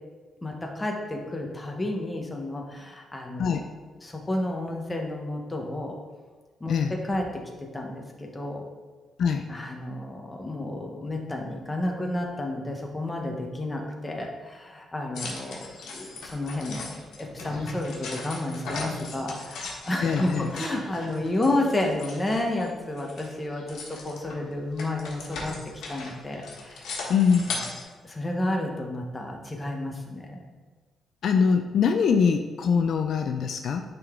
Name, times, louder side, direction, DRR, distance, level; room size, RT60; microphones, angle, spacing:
voice 1, 0.4-3.5 4.0-6.0 6.6-7.4 7.7-8.6 9.5-15.7 15.9-25.5 25.9-27.0 28.0-30.4, left 1 dB, 10° left, 1 dB, 0.8 m, -31 dB
sound 1, 15.1-22.7 23.0-27.8, left 3 dB, 90° left, 1.3 m, -38 dB
voice 2, 20.0-20.5 27.1-27.5 31.2-33.8, left 6 dB, 55° left, 5 dB, 0.3 m, -23 dB
9.6 x 3.7 x 3.5 m, 1.4 s
cardioid pair, 175°, 0 cm